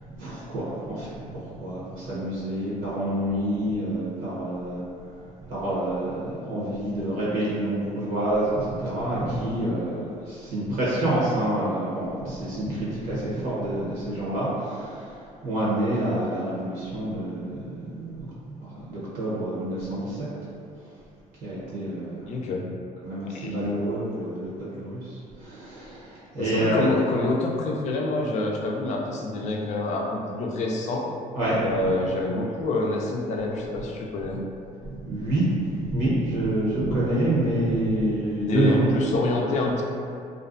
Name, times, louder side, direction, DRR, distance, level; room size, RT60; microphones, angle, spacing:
voice 1, 0.2-1.1 1.4-4.9 5.4-20.3 21.4-22.3 23.0-26.9 31.3-31.9 34.9-38.9, right 1 dB, 70° right, -9 dB, 0.8 m, -27 dB
voice 2, 22.3-22.7 23.2-23.7 26.4-31.1 31.6-34.5 38.5-39.8, left 2 dB, 55° left, 0 dB, 0.4 m, -27 dB
2.5 x 2.1 x 2.5 m, 2.4 s
cardioid pair, 120°, 14 cm